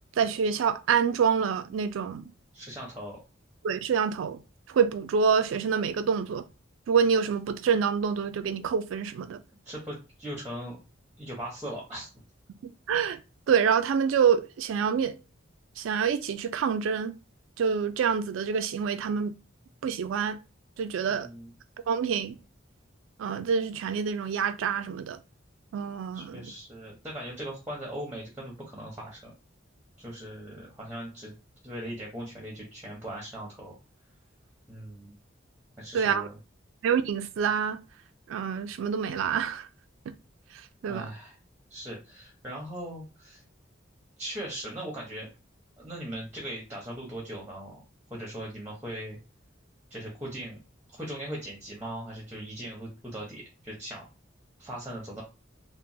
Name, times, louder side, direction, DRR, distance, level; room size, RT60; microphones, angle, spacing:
voice 1, 0.2-2.3 3.6-4.4 4.7-6.4 6.9-9.4 12.6-13.2 13.5-15.2 15.8-17.1 17.6-19.3 19.8-20.4 20.8-21.3 21.9-22.4 23.2-25.2 25.7-26.5 35.9-36.3 36.8-37.8 38.3-39.7 40.8-41.1, right 6 dB, 80° right, 0.3 m, -26 dB
voice 2, 2.5-3.2 9.6-10.8 11.2-12.1 21.0-21.5 26.1-29.3 30.0-31.3 31.6-33.7 34.7-35.2 35.8-36.4 40.8-41.4 41.7-43.4 44.2-45.3 45.8-47.8 48.1-49.2 49.9-50.6 51.0-54.0 54.6-55.2, right 1 dB, 10° right, 0.6 m, -39 dB
2.9 x 2.0 x 2.6 m
head